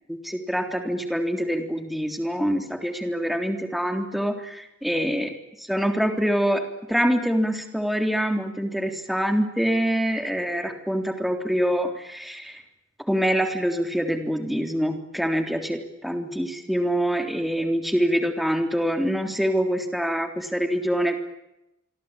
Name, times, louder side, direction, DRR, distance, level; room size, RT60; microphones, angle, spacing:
voice 1, 0.1-5.3 5.7-6.6 6.9-12.6 13.1-21.2, equal, ahead, 6 dB, 3.5 m, -25 dB
28.0 x 23.0 x 8.9 m, 0.88 s
head